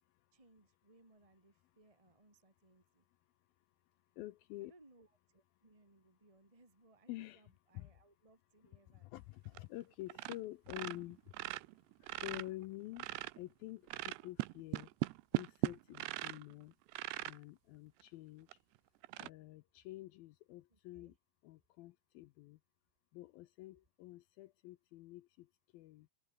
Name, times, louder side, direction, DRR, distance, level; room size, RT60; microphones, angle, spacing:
voice 1, 0.3-3.0 4.6-9.1 20.7-21.1, right 2 dB, 10° right, 3.0 m, -67 dB
voice 2, 4.1-4.7 7.1-7.4 7.7-7.9 8.8-11.6 12.0-13.1 13.3-14.9 15.3-16.7 17.2-18.6 19.2-21.2 21.4-22.6 23.1-26.1, left 17 dB, 80° left, 2.1 m, -49 dB
sound 1, 9.5-9.8 10.1-10.4 10.7-13.5 13.9-16.5 16.9-17.4 18.0-18.1 18.5-18.6 19.0-19.3, right 20 dB, 80° right, 2.8 m, -40 dB
omnidirectional pair, 5.0 m